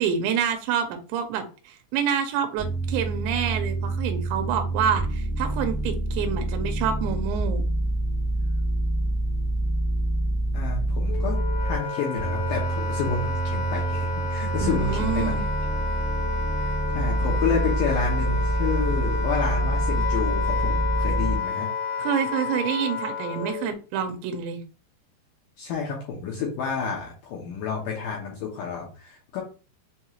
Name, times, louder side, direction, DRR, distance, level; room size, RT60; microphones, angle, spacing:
voice 1, 0.0-7.6 14.6-15.5 22.0-24.6, right 8 dB, 85° right, 6 dB, 3.0 m, -27 dB
sound 1, 2.6-11.8 12.2-21.4, right 2 dB, 30° left, 0.5 m, -26 dB
voice 2, 10.5-11.4 11.7-15.5 16.6-21.7 25.6-29.4, left 5 dB, 80° left, -2 dB, 1.9 m, -30 dB
Wind instrument woodwind instrument, 11.1-23.7, left 5 dB, 65° left, 1.8 m, -31 dB
7.0 x 3.0 x 2.4 m, 0.35 s
omnidirectional pair, 5.1 m